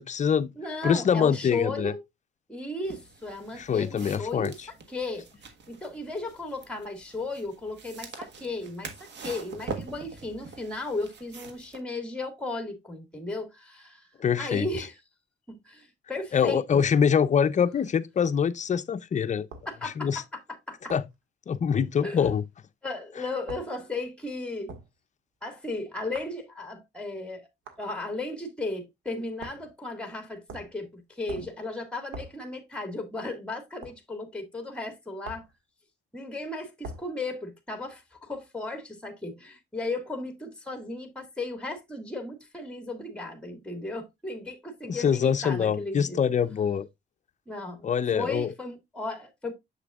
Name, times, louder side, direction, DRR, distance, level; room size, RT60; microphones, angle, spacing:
voice 1, 0.0-0.5 0.8-1.9 3.6-4.5 14.2-14.7 16.3-19.5 19.8-20.2 20.9-21.1 21.5-22.4 44.8-46.9 47.8-48.5, left 7 dB, 40° left, 0.6 m, -24 dB
voice 2, 0.6-2.0 2.5-4.6 4.9-5.2 5.7-14.1 14.4-14.9 15.5-16.8 19.7-20.1 20.7-20.8 22.0-22.3 22.8-24.7 25.4-27.5 27.8-35.5 36.1-46.2 47.5-47.9 48.1-49.5, left 2 dB, 5° left, 1.9 m, -35 dB
sound 1, 2.8-11.8, right 4 dB, 65° right, 1.4 m, -44 dB
sound 2, 19.5-19.7 20.9-21.1 22.2-22.4 23.5-23.7 24.7-24.9 26.1-26.4 27.7-27.8 29.4-29.7 30.5-30.8 31.3-31.6 32.1-32.4 33.8-34.0 35.2-35.5 36.8-37.1, right 2 dB, 85° right, 1.7 m, -42 dB
7.1 x 6.6 x 2.4 m
cardioid pair, 90°, 20 cm